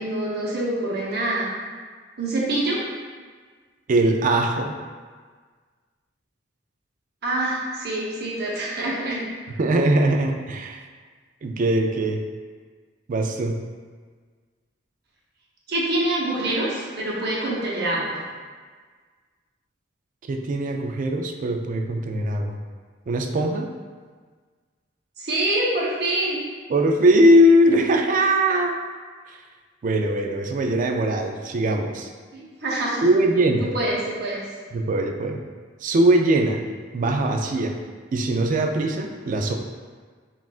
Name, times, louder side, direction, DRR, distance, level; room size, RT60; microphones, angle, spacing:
voice 1, 0.0-1.5 2.2-2.8 7.2-9.2 15.7-18.2 25.2-26.4 32.3-33.1 33.6-34.4, right 1 dB, 60° right, -5 dB, 0.8 m, -25 dB
voice 2, 3.9-4.8 9.6-10.8 11.4-12.2 13.1-13.6 20.3-22.6 23.1-23.7 26.7-28.8 29.3-29.4 29.8-32.1 33.0-33.7 34.7-35.4 35.8-36.6 36.9-37.8 38.1-39.5, right 1 dB, 45° right, 4 dB, 0.3 m, -21 dB
5.7 x 2.5 x 2.4 m, 1.5 s
head